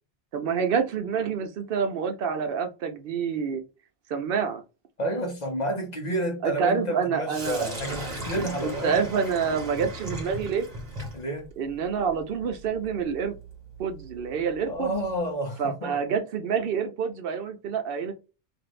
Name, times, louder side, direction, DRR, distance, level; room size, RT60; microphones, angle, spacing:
voice 1, 0.3-3.6 4.1-4.6 6.4-8.0 8.6-10.7 11.6-13.3 13.8-14.9 15.6-18.1, right 6 dB, 70° right, 0.7 m, -27 dB
voice 2, 5.0-9.0 11.1-11.5 14.6-16.0, right 1 dB, 45° left, 0.8 m, -30 dB
Sink (filling or washing), 7.3-15.2, right 1 dB, 40° right, 1.1 m, -38 dB
2.6 x 2.5 x 3.1 m
omnidirectional pair, 1.0 m